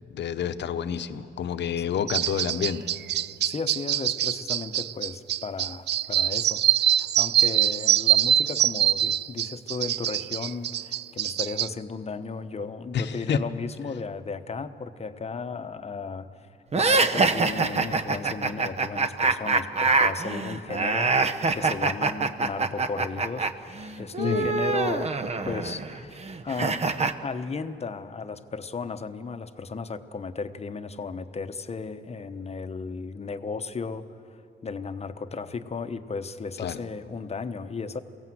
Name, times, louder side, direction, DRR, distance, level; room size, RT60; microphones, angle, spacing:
voice 1, 0.1-2.9 12.9-13.4 24.2-24.5 36.6-36.8, left 8 dB, 60° left, 10 dB, 1.0 m, -28 dB
sound 1, 2.1-11.7, right 11 dB, 60° right, 0.4 m, -24 dB
voice 2, 3.4-16.3 16.7-25.2 25.4-26.8 27.2-34.1 34.6-38.0, left 4 dB, 30° left, 10 dB, 1.0 m, -35 dB
sound 2, 16.7-23.5 23.8-27.1, right 4 dB, 30° right, 0.9 m, -25 dB
23.0 x 17.0 x 7.8 m, 2.7 s
cardioid pair, 90°, 20 cm